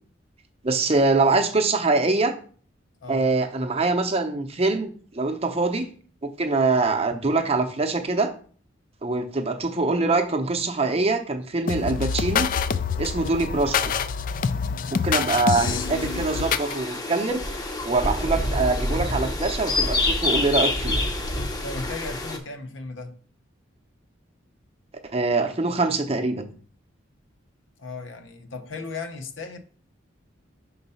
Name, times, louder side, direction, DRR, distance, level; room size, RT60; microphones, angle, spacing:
voice 1, 0.6-2.4 3.1-5.9 6.2-8.3 9.0-12.5 13.0-13.9 14.9-17.4 17.8-21.0 25.1-26.4, right 3 dB, 30° right, 0.7 m, -24 dB
voice 2, 3.0-3.3 21.6-23.2 27.8-29.6, left 3 dB, 80° left, 0.8 m, -36 dB
sound 1, 11.7-16.8, left 6 dB, 45° left, 0.3 m, -26 dB
sound 2, 15.5-22.4, left 2 dB, 20° left, 0.7 m, -27 dB
5.4 x 3.9 x 5.5 m
head